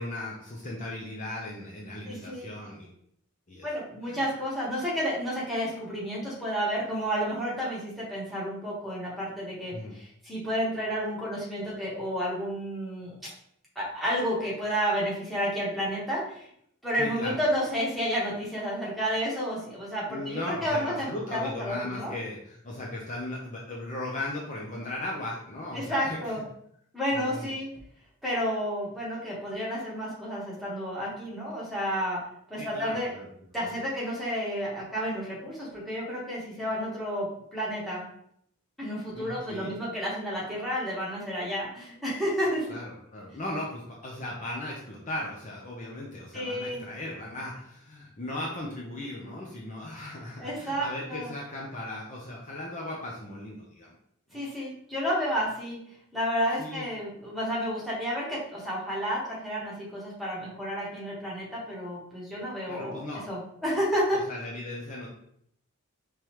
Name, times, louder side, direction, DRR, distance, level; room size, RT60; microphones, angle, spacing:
voice 1, 0.0-2.9 3.5-3.7 4.1-4.3 9.7-9.9 16.9-17.4 20.1-26.3 27.1-27.5 32.6-33.3 33.6-33.7 39.1-39.7 42.7-53.9 54.3-54.4 56.6-56.9 62.7-63.3 64.1-65.1, left 1 dB, 35° left, -3 dB, 0.6 m, -37 dB
voice 2, 2.1-2.5 3.6-13.3 13.7-16.5 16.8-22.1 25.7-26.4 26.9-27.7 28.2-32.2 32.5-33.1 33.5-38.0 38.8-42.7 46.3-46.8 50.4-51.3 54.3-55.8 56.1-64.2, equal, ahead, -7 dB, 1.3 m, -31 dB
5.3 x 3.1 x 3.0 m, 0.70 s
head